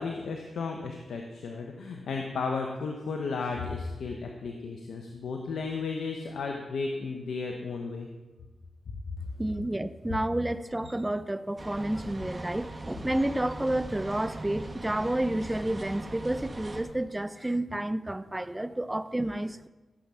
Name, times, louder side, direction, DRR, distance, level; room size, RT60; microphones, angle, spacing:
voice 1, 0.0-8.1 8.9-9.0, left 4 dB, 80° left, 2 dB, 1.1 m, -34 dB
voice 2, 9.4-19.7, right 1 dB, 15° right, 13 dB, 0.7 m, -30 dB
sound 1, 11.6-16.8, right 2 dB, 35° right, 1.9 m, -41 dB
14.5 x 7.7 x 5.7 m, 1.2 s
supercardioid pair, 45°, 0 cm